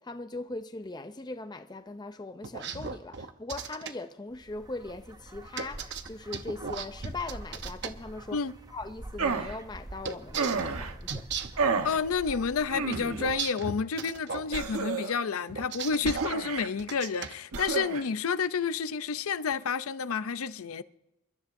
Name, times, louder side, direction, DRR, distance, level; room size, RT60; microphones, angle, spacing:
voice 1, 0.0-8.4 8.7-11.3, left 2 dB, 20° left, 0.5 m, -40 dB
sound 1, 2.4-3.9 5.6-7.9 10.0-11.6 12.9-14.5 15.5-16.3 16.8-17.3, right 6 dB, 50° right, 0.8 m, -36 dB
sound 2, 4.3-13.4, right 1 dB, 15° right, 0.7 m, -46 dB
sound 3, 9.2-9.6 10.4-10.9 11.6-12.0 12.7-13.3 14.5-15.2 16.0-16.7 17.5-18.0, right 4 dB, 85° right, 1.1 m, -30 dB
voice 2, 11.8-20.8, left 5 dB, 75° left, 0.5 m, -30 dB
28.0 x 13.0 x 2.6 m
head